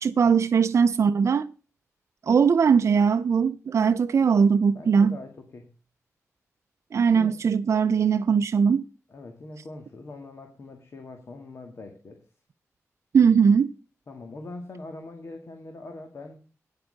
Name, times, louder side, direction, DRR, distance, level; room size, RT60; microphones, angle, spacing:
voice 1, 0.0-1.5 2.3-5.2 6.9-8.9 13.1-13.7, right 6 dB, 60° right, 0.5 m, -20 dB
voice 2, 4.7-5.7 7.1-7.4 9.1-12.2 14.1-16.4, left 2 dB, 55° left, 1.9 m, -42 dB
9.8 x 8.3 x 6.5 m
wide cardioid pair, 130°, 6 cm